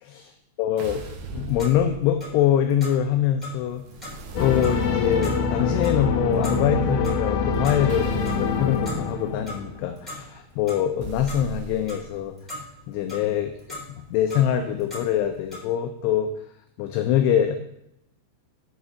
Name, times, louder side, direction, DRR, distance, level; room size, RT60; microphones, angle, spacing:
voice 1, 0.6-3.8 4.4-12.4 12.9-13.8 14.1-16.3 16.8-17.6, left 10 dB, 85° left, 6 dB, 2.4 m, -24 dB
Magic Fire Impact, 0.8-2.4 3.8-5.4 7.9-8.7 11.0-12.1, right 3 dB, 80° right, 3.2 m, -37 dB
Clock, 1.2-15.6, left 1 dB, ahead, 2.1 m, -42 dB
sound 1, 4.3-9.9, left 4 dB, 70° left, 2.1 m, -25 dB
11.0 x 4.1 x 6.2 m, 0.82 s
omnidirectional pair, 5.3 m